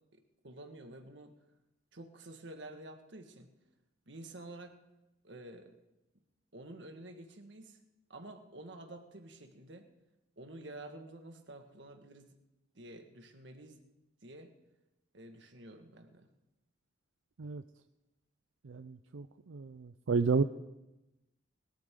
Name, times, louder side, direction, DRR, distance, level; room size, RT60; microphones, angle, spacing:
voice 1, 0.1-1.3 1.9-3.5 4.1-4.7 5.2-5.7 6.5-7.8 8.1-9.9 10.4-12.3 12.8-13.8 14.2-14.5 15.1-16.3, right 1 dB, 65° right, 5 dB, 1.7 m, -50 dB
voice 2, 18.6-20.4, right 4 dB, 85° right, 9 dB, 0.5 m, -32 dB
21.0 x 13.0 x 3.8 m, 0.96 s
head